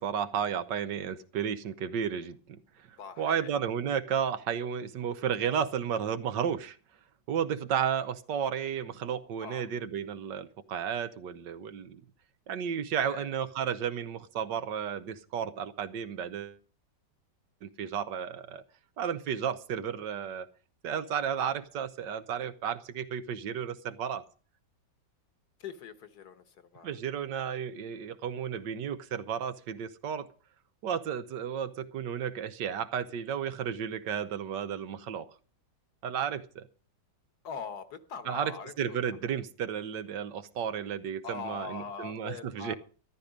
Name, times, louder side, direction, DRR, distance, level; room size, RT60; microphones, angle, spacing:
voice 1, 0.0-6.8 7.3-12.0 12.5-16.6 17.6-18.6 19.0-20.5 20.8-24.2 26.8-30.3 30.8-35.3 36.0-36.7 38.2-42.7, right 8 dB, 75° right, 1.5 m, -33 dB
voice 2, 3.0-3.5 9.4-9.6 13.0-13.3 25.6-26.9 37.4-39.0 39.2-39.3 41.2-42.7, left 5 dB, 60° left, 1.6 m, -42 dB
13.5 x 12.0 x 5.2 m
omnidirectional pair, 2.0 m